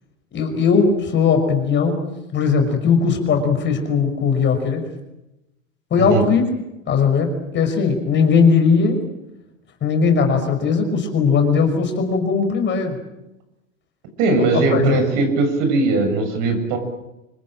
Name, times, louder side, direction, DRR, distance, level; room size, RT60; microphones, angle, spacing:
voice 1, 0.3-2.0 2.3-4.8 5.9-6.4 6.9-9.0 9.8-12.9 14.4-15.0, left 5 dB, 25° left, 5 dB, 5.8 m, -18 dB
voice 2, 14.2-16.8, right 3 dB, 50° right, 7 dB, 7.5 m, -19 dB
26.0 x 21.0 x 9.0 m, 0.93 s
hypercardioid pair, 115°, 40 cm